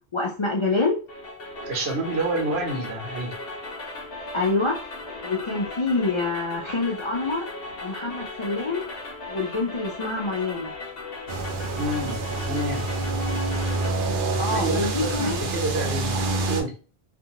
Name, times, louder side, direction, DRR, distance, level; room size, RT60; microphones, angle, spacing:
voice 1, 0.1-1.0 4.3-4.8 5.2-7.5 7.8-8.8 9.3-10.7 14.4-15.4, left 3 dB, 45° left, -1 dB, 0.4 m, -26 dB
sound 1, 1.1-13.9, left 2 dB, 70° left, 0.9 m, -37 dB
voice 2, 1.6-3.4 11.8-12.9 14.5-16.8, right 2 dB, 85° right, 2 dB, 1.1 m, -29 dB
sound 2, 11.3-16.6, right 2 dB, 60° right, 0.7 m, -27 dB
2.5 x 2.4 x 2.8 m, 0.36 s
omnidirectional pair, 1.0 m